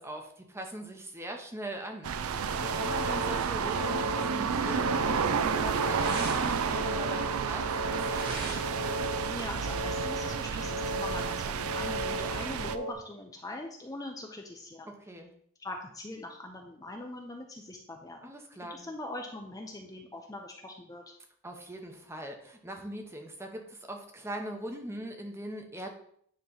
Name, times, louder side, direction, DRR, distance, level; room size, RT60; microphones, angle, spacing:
voice 1, 0.0-8.5 14.9-15.3 18.2-18.8 21.4-25.9, right 1 dB, 10° right, 3 dB, 0.9 m, -41 dB
sound 1, 2.0-12.8, right 6 dB, 85° right, 0.5 m, -31 dB
sound 2, 2.4-12.9, equal, 70° left, 1.0 m, -37 dB
sound 3, 4.6-9.6, right 2 dB, 45° right, 1.8 m, -44 dB
voice 2, 9.3-14.9 15.6-18.3 18.7-21.1, left 2 dB, 15° left, 2 dB, 0.6 m, -42 dB
9.5 x 3.2 x 5.5 m, 0.64 s
head